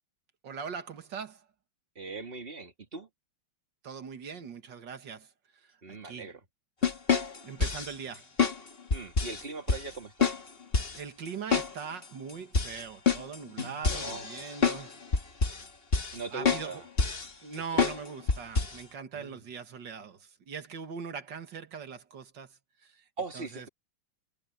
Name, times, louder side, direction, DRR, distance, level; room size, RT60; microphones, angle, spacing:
voice 1, 0.4-1.4 3.8-5.3 5.9-6.3 7.4-8.3 10.9-15.0 16.3-16.8 17.4-23.0 23.3-23.7, right 6 dB, 60° right, 2.3 m, -41 dB
voice 2, 2.0-3.1 5.8-6.4 8.9-10.3 14.0-14.3 16.1-16.8 17.8-17.9 19.1-19.4 23.2-23.7, right 3 dB, 25° right, 2.7 m, -40 dB
sound 1, 6.8-7.9 8.4-8.6 8.9-9.4 9.7-9.8 10.2-10.4 10.7-11.0 11.5-11.7 12.0-12.1 12.5-14.8 15.1-15.6 15.9-16.2 16.5-16.7 17.0-17.3 17.8-18.0 18.3-18.8, left 5 dB, 30° left, 1.9 m, -27 dB
omnidirectional pair, 2.3 m